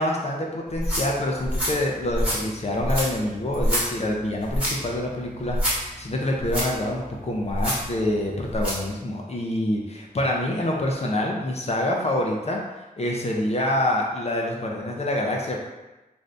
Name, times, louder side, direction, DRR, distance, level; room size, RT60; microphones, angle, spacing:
voice 1, 0.0-12.6 13.0-15.6, left 1 dB, 45° left, -1 dB, 0.5 m, -26 dB
sound 1, 0.7-8.9, equal, 10° right, 1.2 m, -28 dB
2.6 x 2.5 x 3.3 m, 1.0 s
wide cardioid pair, 105°, 15 cm